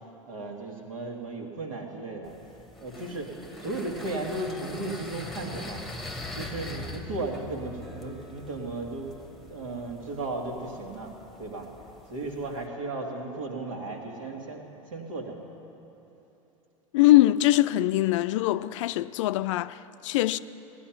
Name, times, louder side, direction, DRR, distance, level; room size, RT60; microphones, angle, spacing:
voice 1, 0.3-2.3 2.8-5.8 6.3-9.1 9.5-11.1 11.4-11.7 12.1-14.6 14.9-15.4, right 2 dB, 75° right, 2.0 m, -35 dB
sound 1, 2.2-12.7, left 1 dB, ahead, 1.3 m, -42 dB
voice 2, 16.9-20.4, left 15 dB, 65° left, 0.4 m, -22 dB
16.5 x 9.8 x 5.9 m
hypercardioid pair, 85°, 17 cm